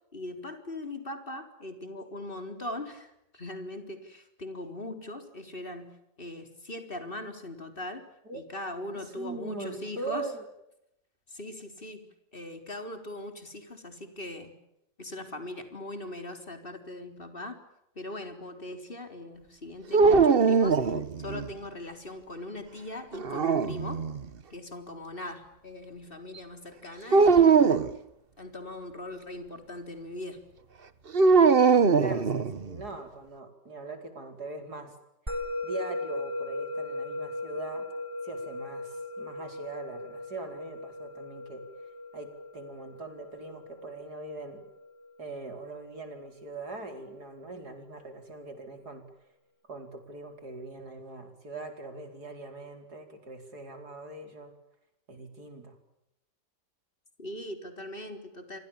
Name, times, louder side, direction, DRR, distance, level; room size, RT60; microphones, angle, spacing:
voice 1, 0.1-10.3 11.3-14.6 15.0-17.6 17.9-24.0 24.5-27.6 28.4-30.4 57.2-58.6, left 1 dB, 25° left, 6 dB, 4.1 m, -40 dB
voice 2, 9.2-10.4 32.0-35.0 35.3-35.4 35.6-37.9 38.2-41.6 42.1-44.6 45.2-49.1 49.7-54.5 55.1-55.8, right 3 dB, 55° right, 6 dB, 5.1 m, -41 dB
sound 1, 19.9-21.5 23.1-24.3 27.1-27.9 31.1-32.8, right 5 dB, 35° right, 1.1 m, -21 dB
Musical instrument, 35.3-45.9, left 2 dB, 15° right, 3.8 m, -38 dB
28.5 x 25.5 x 7.3 m, 0.84 s
omnidirectional pair, 2.0 m